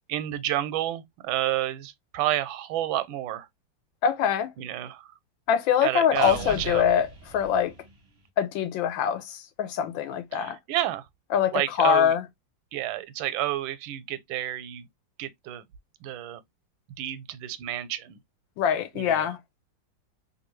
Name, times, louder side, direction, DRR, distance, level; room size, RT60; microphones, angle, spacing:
voice 1, 0.1-3.5 4.6-5.1 5.8-6.9 10.3-11.0 11.5-12.1 12.7-14.8 15.2-15.6 16.0-16.4 17.0-18.2 18.9-19.3, right 13 dB, 85° right, 1.3 m, -30 dB
voice 2, 4.0-4.5 5.5-7.7 8.4-10.6 11.3-12.2 18.6-19.4, left 8 dB, 85° left, 1.4 m, -24 dB
sound 1, 6.1-8.2, right 2 dB, 50° right, 0.7 m, -40 dB
3.2 x 2.5 x 3.0 m
omnidirectional pair, 2.1 m